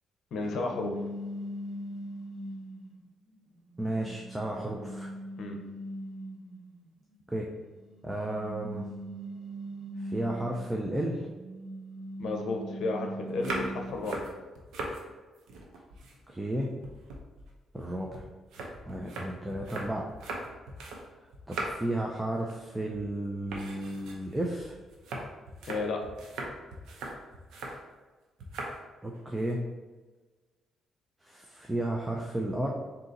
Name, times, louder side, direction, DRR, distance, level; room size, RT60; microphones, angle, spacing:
voice 1, 0.3-1.0 5.4-5.6 12.2-14.2 25.7-26.0, left 3 dB, 70° left, 3 dB, 0.7 m, -32 dB
sound 1, 0.7-2.9 3.5-6.6 7.8-10.8 11.2-14.2, equal, 15° left, 1.2 m, -40 dB
voice 2, 3.8-5.1 7.3-7.5 8.0-8.9 10.0-11.2 16.3-16.7 17.7-18.2 18.9-20.0 21.5-24.7 29.0-29.6 31.2-32.7, right 1 dB, 10° right, -1 dB, 0.5 m, -33 dB
Cutting Apple, 13.3-15.0 15.4-16.5 16.8-21.1 21.3-22.0 22.3-22.7 22.9-23.1 23.5-27.8 28.4-28.8 29.1-29.5, right 2 dB, 80° right, 0.7 m, -40 dB
3.8 x 2.8 x 4.0 m, 1.3 s
cardioid pair, 90°, 0 cm